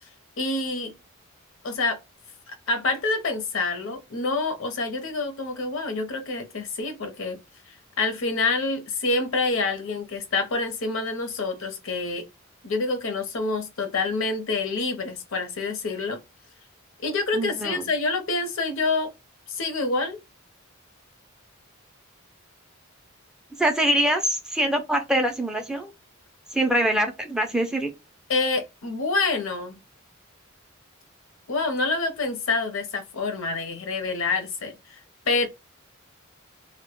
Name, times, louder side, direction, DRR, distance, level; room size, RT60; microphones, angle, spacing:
voice 1, 0.4-0.9 1.6-2.0 2.5-7.4 7.7-12.3 12.6-16.2 17.0-19.1 19.5-20.2 28.3-29.8 31.5-35.0 35.3-35.5, left 3 dB, 65° left, 0.6 m, -27 dB
voice 2, 17.3-17.9 23.6-25.9 26.5-27.9, right 1 dB, 5° right, 0.3 m, -24 dB
2.1 x 2.1 x 2.9 m
head